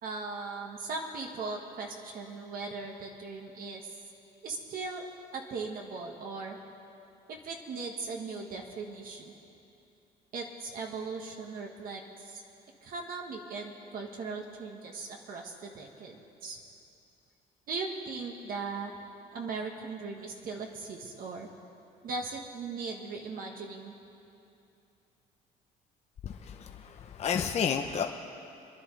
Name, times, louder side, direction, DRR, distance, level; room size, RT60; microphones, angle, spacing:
voice 1, 0.0-3.8 4.4-5.0 5.3-6.6 7.3-9.3 10.3-12.4 12.8-16.6 17.7-19.0 19.3-21.5 22.0-24.0, right 4 dB, 60° right, 1 dB, 1.6 m, -38 dB
voice 2, 26.2-28.0, left 7 dB, 40° left, 3 dB, 0.7 m, -31 dB
27.5 x 10.5 x 3.3 m, 2.7 s
cardioid pair, 110°, 17 cm